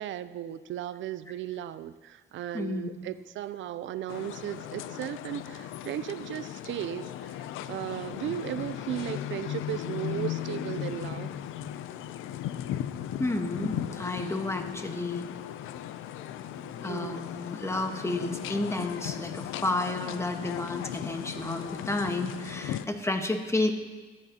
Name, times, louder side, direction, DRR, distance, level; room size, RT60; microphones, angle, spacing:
voice 1, 0.0-7.4 7.7-11.3 15.7-15.8 16.9-17.2, right 12 dB, 70° right, 14 dB, 0.5 m, -36 dB
voice 2, 2.5-2.9 13.2-15.3 16.6-23.7, left 2 dB, 15° left, 5 dB, 1.2 m, -31 dB
sound 1, 4.1-22.8, left 11 dB, 90° left, 0.5 m, -37 dB
17.5 x 13.0 x 2.9 m, 1.4 s
cardioid pair, 90°, 20 cm